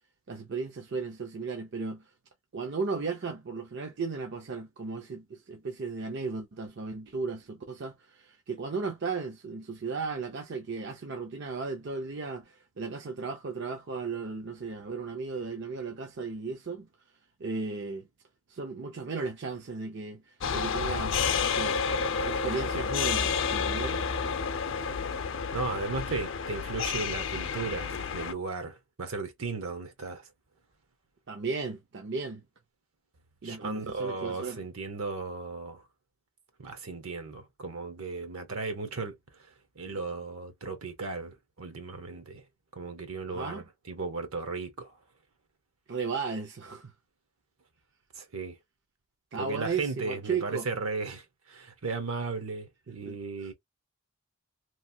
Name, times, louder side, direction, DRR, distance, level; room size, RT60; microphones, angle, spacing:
voice 1, 0.3-2.1 2.5-16.9 17.4-18.1 18.5-21.8 22.3-24.0 31.3-32.4 33.4-34.6 43.3-43.6 45.9-46.9 49.3-50.7 53.1-53.5, right 4 dB, 55° right, 0.5 m, -35 dB
sound 1, 20.4-28.3, left 6 dB, 60° left, 0.5 m, -30 dB
voice 2, 25.5-30.3 33.4-35.8 36.6-39.1 39.8-42.4 42.8-44.9 48.1-48.6 49.4-53.5, right 3 dB, 75° right, 0.9 m, -36 dB
3.1 x 2.2 x 2.6 m
head